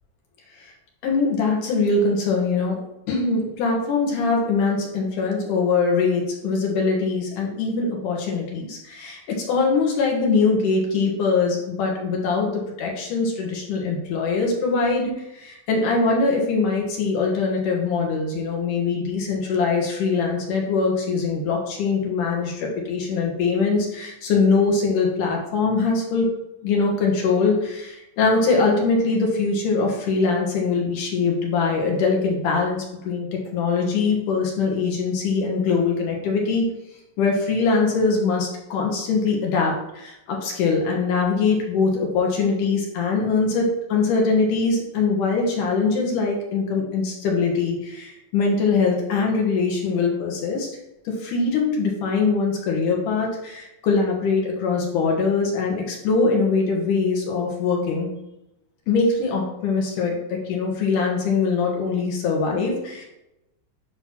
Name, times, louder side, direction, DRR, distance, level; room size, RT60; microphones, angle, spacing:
voice 1, 1.0-2.8 3.1-26.3 26.6-36.7 37.2-50.7 51.1-58.1 58.9-63.1, left 4 dB, 70° left, 0 dB, 2.6 m, -22 dB
8.2 x 2.9 x 5.9 m, 0.89 s
omnidirectional pair, 4.1 m